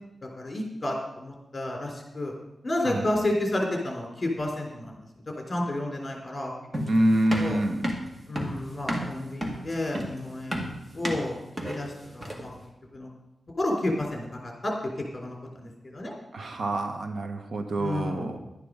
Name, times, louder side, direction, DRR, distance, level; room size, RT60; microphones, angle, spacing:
voice 1, 0.4-2.3 2.6-5.0 5.5-6.5 7.4-7.6 8.3-11.4 11.7-12.5 12.9-13.1 13.6-14.7 15.1-16.1 17.8-18.3, left 1 dB, 30° left, 0 dB, 3.4 m, -31 dB
sound 1, 6.7-12.6, equal, 20° right, 2.0 m, -32 dB
voice 2, 6.9-7.8 16.3-18.4, right 1 dB, 70° right, 5 dB, 1.3 m, -26 dB
11.5 x 9.9 x 5.3 m, 0.89 s
wide cardioid pair, 100°, 0 cm